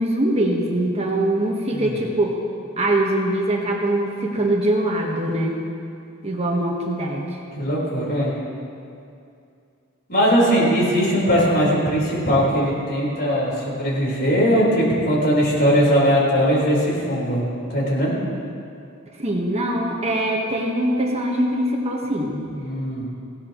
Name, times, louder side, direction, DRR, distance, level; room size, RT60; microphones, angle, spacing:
voice 1, 0.0-2.3 2.8-5.6 6.2-7.2 19.2-22.5, right 1 dB, 30° right, -1 dB, 1.4 m, -22 dB
voice 2, 7.5-8.3 10.1-17.4 17.7-18.1 22.5-23.1, equal, 50° left, -5 dB, 4.4 m, -20 dB
19.0 x 16.0 x 3.1 m, 2.5 s
head